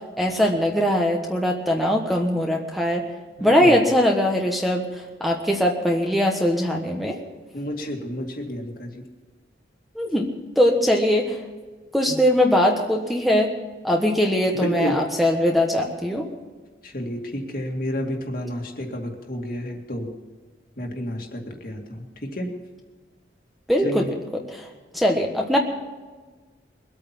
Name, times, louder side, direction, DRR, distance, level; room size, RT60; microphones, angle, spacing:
voice 1, 0.2-3.1 3.4-4.9 5.2-7.2 9.9-10.3 10.6-11.4 11.9-13.5 13.8-16.3 23.7-24.0 24.5-24.7 24.9-25.6, equal, ahead, 1 dB, 1.3 m, -21 dB
voice 2, 3.4-3.7 7.5-9.0 14.5-15.0 16.8-20.1 20.8-22.5 23.8-24.1, equal, 50° left, 2 dB, 2.3 m, -30 dB
22.0 x 8.8 x 6.0 m, 1.4 s
head